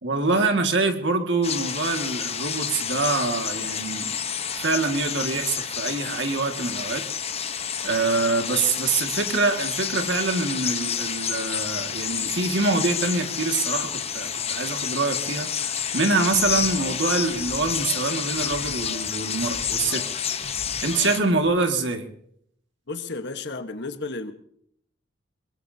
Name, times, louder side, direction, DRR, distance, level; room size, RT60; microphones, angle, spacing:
voice 1, 0.0-4.2 4.6-7.0 7.8-20.0 20.8-22.1, right 3 dB, 60° right, 5 dB, 2.0 m, -25 dB
sound 1, 1.4-21.2, left 8 dB, 30° left, 1.0 m, -29 dB
sound 2, 16.3-21.5, left 1 dB, 90° left, 3.1 m, -43 dB
voice 2, 22.9-24.3, left 3 dB, 60° left, 8 dB, 1.3 m, -32 dB
23.0 x 22.0 x 2.8 m, 0.68 s
head